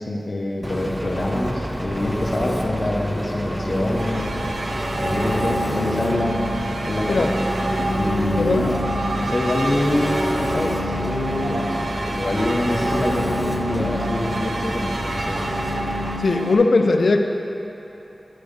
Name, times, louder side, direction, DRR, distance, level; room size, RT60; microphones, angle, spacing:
voice 1, 0.0-4.3 4.9-7.4 7.9-8.8 9.1-11.7 12.1-15.4, left 1 dB, 50° left, -1 dB, 0.8 m, -26 dB
Engine, 0.6-16.2, equal, 5° right, 0.5 m, -27 dB
sound 1, 4.0-16.6, right 1 dB, 85° right, 0.5 m, -28 dB
voice 2, 8.4-8.7 16.2-17.2, left 3 dB, 75° left, 5 dB, 0.4 m, -19 dB
9.1 x 5.1 x 3.3 m, 3.0 s
wide cardioid pair, 65°, 0 cm